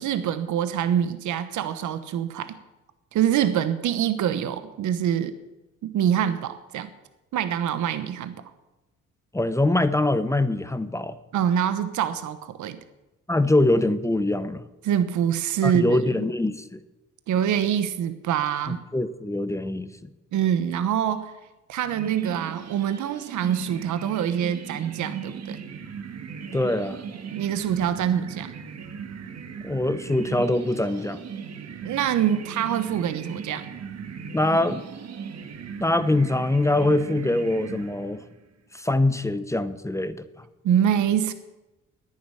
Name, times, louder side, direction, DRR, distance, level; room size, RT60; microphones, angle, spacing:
voice 1, 0.0-2.6 3.1-5.3 5.8-6.9 7.3-8.4 11.3-12.8 14.8-16.2 17.3-18.8 20.3-21.4 21.7-25.6 27.3-28.5 31.8-33.7 40.6-41.3, right 9 dB, 75° right, 11 dB, 1.1 m, -25 dB
voice 2, 9.3-11.2 13.3-14.6 15.6-16.8 18.9-19.9 26.5-27.0 29.6-31.2 34.3-34.8 35.8-38.2 38.7-40.3, left 2 dB, 10° left, 13 dB, 0.9 m, -23 dB
sound 1, 21.8-38.4, right 6 dB, 60° right, 1.6 m, -38 dB
11.0 x 9.7 x 9.9 m, 1.0 s
cardioid pair, 90°, 30 cm